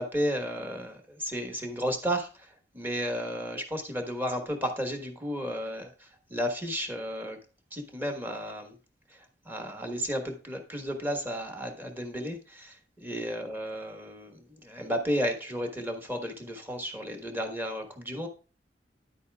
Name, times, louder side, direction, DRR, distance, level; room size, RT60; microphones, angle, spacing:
voice 1, 0.0-7.4 7.7-8.8 9.1-18.3, equal, 10° right, 4 dB, 1.4 m, -33 dB
10.0 x 8.3 x 2.3 m, 0.34 s
head